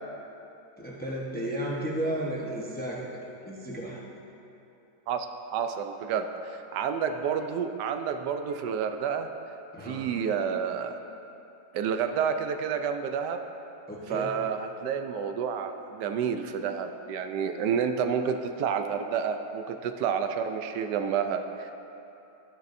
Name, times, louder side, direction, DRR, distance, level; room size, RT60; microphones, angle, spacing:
voice 1, 0.8-4.0 9.7-10.1 13.9-14.3, right 1 dB, 10° left, -3 dB, 0.5 m, -33 dB
voice 2, 5.1-9.3 9.8-10.9 11.7-13.4 14.1-21.9, right 7 dB, 75° right, 7 dB, 1.1 m, -30 dB
12.5 x 10.0 x 2.6 m, 2.9 s
omnidirectional pair, 1.9 m